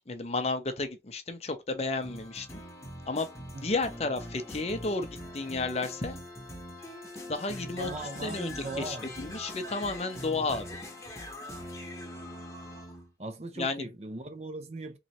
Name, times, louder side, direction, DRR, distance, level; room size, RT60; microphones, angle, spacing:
voice 1, 0.0-2.5 3.1-3.3 3.6-5.1 5.3-6.2 7.3-7.9 8.2-10.7 13.6-13.9, left 3 dB, 35° left, 0.7 m, -32 dB
sound 1, 2.0-13.1, left 1 dB, 15° left, 1.0 m, -42 dB
voice 2, 7.8-9.1 10.4-10.6 13.2-15.0, right 2 dB, 35° right, 0.6 m, -39 dB
3.9 x 3.1 x 2.8 m
head